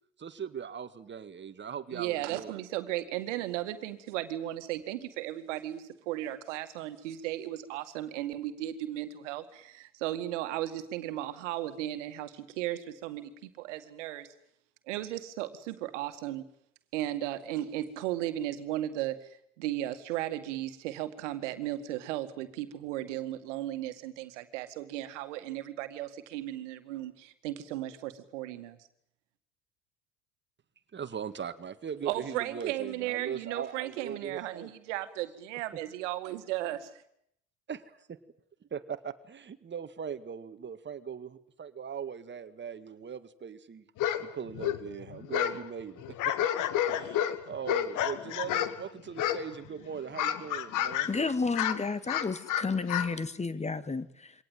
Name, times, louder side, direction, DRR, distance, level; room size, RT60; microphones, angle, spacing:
voice 1, 0.2-2.5 30.9-34.7 37.7-38.2 38.7-43.8 44.3-51.1, right 7 dB, 30° right, 11 dB, 2.0 m, -40 dB
voice 2, 1.9-14.3 14.9-16.5 16.9-19.3 19.6-28.8 32.1-37.0, right 14 dB, 75° right, 10 dB, 2.1 m, -35 dB
sound 1, 44.0-44.2 44.5-45.6 46.0-48.8 49.2-49.7 49.9-51.2 51.5-53.1, left 11 dB, 55° left, 2.1 m, -30 dB
voice 3, 51.1-54.3, left 4 dB, 20° left, 14 dB, 1.6 m, -31 dB
24.5 x 18.5 x 9.3 m, 0.72 s
hypercardioid pair, 75°, 37 cm